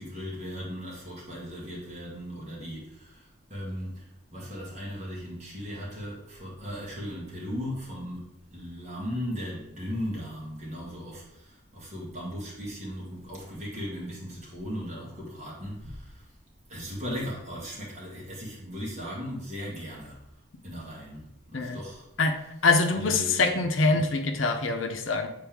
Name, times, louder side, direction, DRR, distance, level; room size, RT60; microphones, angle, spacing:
voice 1, 0.0-16.3 16.7-20.2 20.6-22.0 22.9-23.6 23.9-24.1, equal, 35° right, -5 dB, 2.1 m, -37 dB
voice 2, 22.2-25.3, left 3 dB, 75° left, 5 dB, 0.7 m, -24 dB
7.6 x 4.1 x 3.5 m, 0.82 s
head